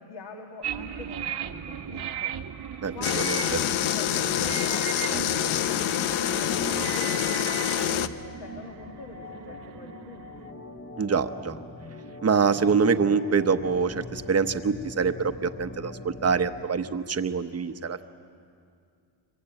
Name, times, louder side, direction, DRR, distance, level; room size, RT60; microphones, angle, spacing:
voice 1, 0.0-2.3 2.9-10.5, left 4 dB, 55° left, 2 dB, 2.1 m, -44 dB
sound 1, 0.6-10.5, right 9 dB, 55° right, 1.2 m, -37 dB
voice 2, 2.8-3.4 11.0-11.6 12.2-15.1 15.4-18.0, right 5 dB, 30° right, 9 dB, 1.0 m, -25 dB
sound 2, 3.0-8.1, left 11 dB, 85° left, 0.9 m, -26 dB
Organ, 4.5-16.6, left 2 dB, 25° left, 1.2 m, -43 dB
26.0 x 23.5 x 9.0 m, 2.3 s
cardioid pair, 125°, 47 cm